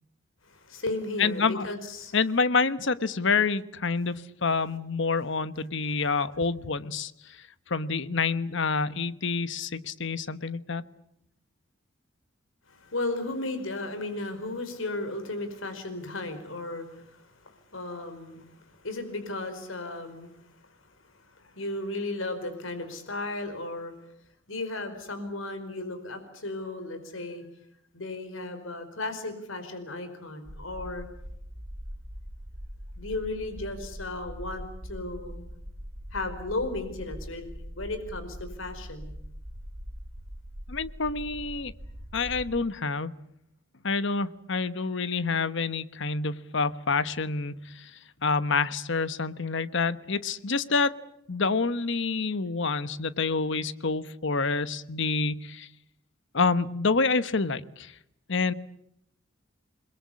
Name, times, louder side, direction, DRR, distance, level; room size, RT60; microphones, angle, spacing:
voice 1, 0.4-2.2 12.7-23.9 24.5-27.5 27.9-31.1 33.0-35.4 36.1-39.1, left 2 dB, 90° left, 8 dB, 4.8 m, -35 dB
voice 2, 1.2-1.7 2.1-4.1 4.4-10.8 40.7-41.7 42.1-43.1 43.8-50.9 51.3-55.7 56.3-57.9 58.3-58.5, left 4 dB, 65° left, 14 dB, 1.2 m, -27 dB
sound 1, 30.4-42.6, equal, 45° right, 6.2 m, -42 dB
28.5 x 22.0 x 8.5 m, 0.77 s
head